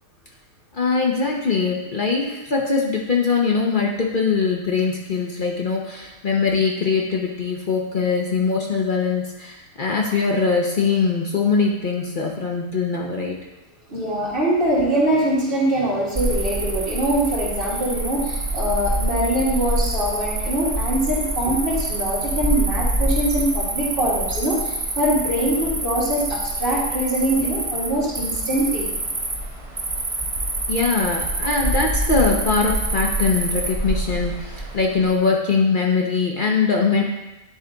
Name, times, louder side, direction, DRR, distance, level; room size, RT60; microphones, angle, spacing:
voice 1, 0.7-13.3 30.7-37.0, left 4 dB, 55° left, -1 dB, 0.5 m, -22 dB
voice 2, 13.9-28.9, right 1 dB, 35° right, -7 dB, 2.3 m, -23 dB
Cricket, 16.1-35.1, right 2 dB, 50° right, 0.3 m, -26 dB
10.0 x 3.4 x 3.8 m, 1.1 s
omnidirectional pair, 1.8 m